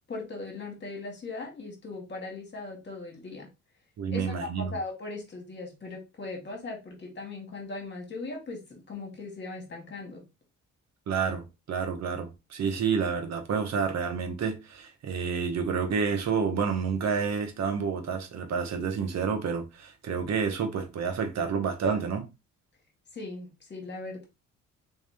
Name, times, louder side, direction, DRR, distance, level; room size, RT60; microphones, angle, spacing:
voice 1, 0.1-3.5 4.1-10.2 23.1-24.3, left 3 dB, 35° left, 1.9 m, -39 dB
voice 2, 4.0-4.7 11.1-22.3, right 6 dB, 60° right, 1.1 m, -29 dB
3.5 x 3.2 x 3.4 m
cardioid pair, 90°, 30 cm